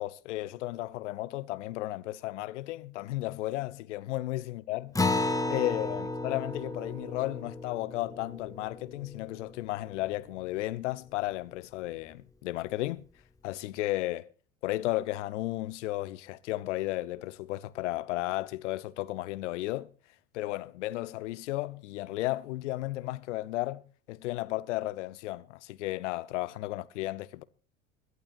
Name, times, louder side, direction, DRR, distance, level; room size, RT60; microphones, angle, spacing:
voice 1, 0.0-13.0 13.4-14.3 14.6-19.9 20.3-27.4, left 17 dB, 60° left, 0.8 m, -34 dB
Acoustic guitar, 4.9-9.8, left 2 dB, 10° left, 1.1 m, -33 dB
25.5 x 11.5 x 2.5 m
figure-of-eight pair, 65°, 41 cm